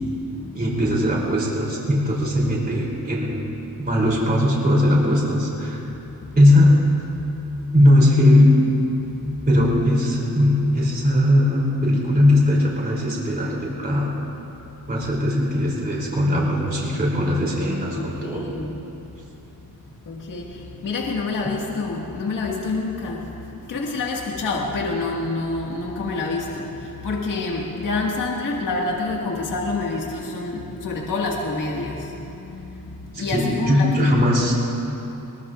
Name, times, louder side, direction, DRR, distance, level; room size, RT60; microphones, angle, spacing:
voice 1, 0.5-3.4 3.8-5.8 6.3-6.7 7.7-8.5 9.5-14.1 14.9-18.5 33.3-34.5, left 1 dB, 25° right, -4 dB, 3.2 m, -19 dB
voice 2, 17.9-18.8 20.1-23.3 23.7-34.2, left 3 dB, 60° left, -2 dB, 1.8 m, -27 dB
23.0 x 22.0 x 2.5 m, 3.0 s
wide cardioid pair, 170°, 36 cm